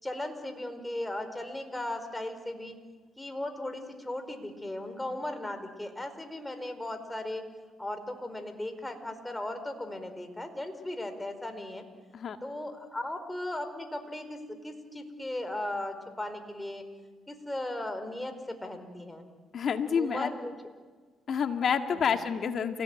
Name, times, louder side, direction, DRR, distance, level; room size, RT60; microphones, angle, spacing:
voice 1, 0.0-2.7 3.2-7.4 7.8-11.8 12.4-16.9 17.3-19.2 20.0-20.5 22.1-22.2, left 1 dB, 10° left, 8 dB, 4.7 m, -37 dB
voice 2, 19.5-20.3 21.3-22.8, left 7 dB, 60° left, 7 dB, 2.0 m, -28 dB
29.5 x 17.5 x 9.2 m, 1.4 s
supercardioid pair, 60°, 0 cm